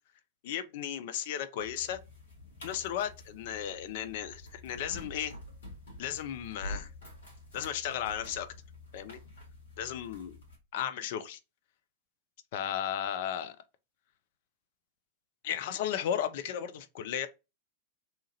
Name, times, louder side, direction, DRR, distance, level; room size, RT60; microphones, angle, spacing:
voice 1, 0.4-2.0 2.6-5.3 6.0-6.9 7.5-8.5 8.9-9.2 9.8-10.4 10.7-11.4 12.5-13.6 15.4-17.3, left 10 dB, 50° left, 0.4 m, -35 dB
sound 1, 1.6-10.6, left 1 dB, 70° left, 1.2 m, -47 dB
2.8 x 2.3 x 2.8 m
figure-of-eight pair, 90°, 0 cm